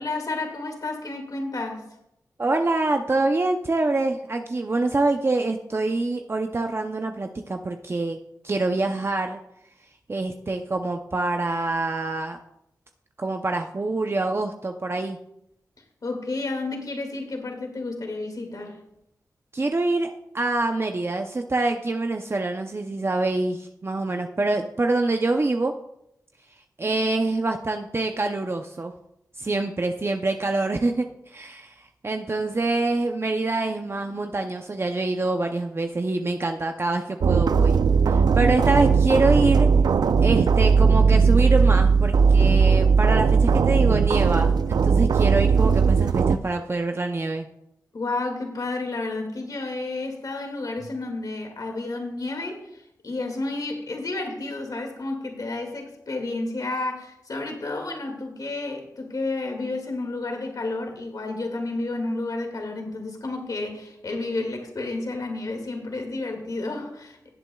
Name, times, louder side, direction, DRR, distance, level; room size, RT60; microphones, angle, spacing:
voice 1, 0.0-1.8 16.0-18.8 47.9-67.3, left 2 dB, 65° left, 3 dB, 2.2 m, -31 dB
voice 2, 2.4-8.2 8.4-9.4 10.1-12.4 13.2-15.2 19.5-25.7 26.8-28.9 29.4-37.8 38.1-39.7 40.2-47.5, right 2 dB, 35° right, 4 dB, 0.6 m, -25 dB
sound 1, 37.2-46.4, right 5 dB, 80° right, 0.4 m, -18 dB
17.0 x 7.9 x 2.3 m, 0.81 s
cardioid pair, 55°, 7 cm